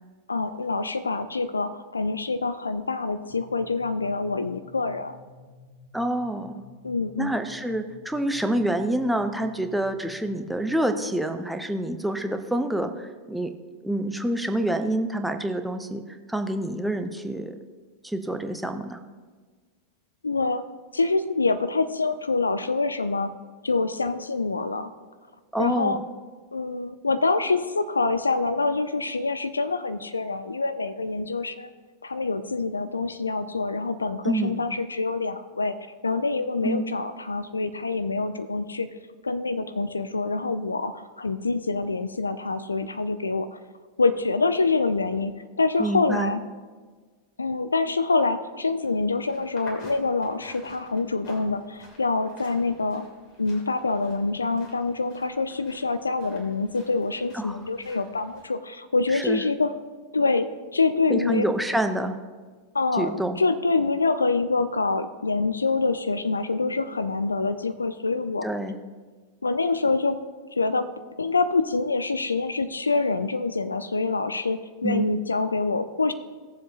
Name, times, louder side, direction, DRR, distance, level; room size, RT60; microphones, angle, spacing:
voice 1, 0.3-5.2 6.8-7.3 20.2-20.7 20.9-23.3 23.6-24.9 25.6-26.0 26.5-31.7 32.0-35.7 36.0-38.9 39.2-43.6 44.0-46.4 47.4-53.1 53.4-59.7 60.1-61.5 62.7-68.5 69.4-70.2 70.5-70.9 71.2-76.1, left 3 dB, 75° left, 12 dB, 0.5 m, -26 dB
sound 1, 3.3-10.9, left 4 dB, 75° right, 1.6 m, -52 dB
voice 2, 5.9-6.6 7.2-13.5 13.8-16.0 16.3-17.5 18.0-19.0 25.5-26.0 34.2-34.6 36.6-36.9 45.8-46.3 57.3-57.6 59.1-59.4 61.1-62.2 63.0-63.4 68.4-68.8 74.8-75.1, right 1 dB, 5° right, 6 dB, 0.8 m, -27 dB
sound 2, 48.8-58.4, left 2 dB, 45° left, 3.1 m, -50 dB
18.0 x 7.3 x 2.9 m, 1.5 s
figure-of-eight pair, 90°, 0 cm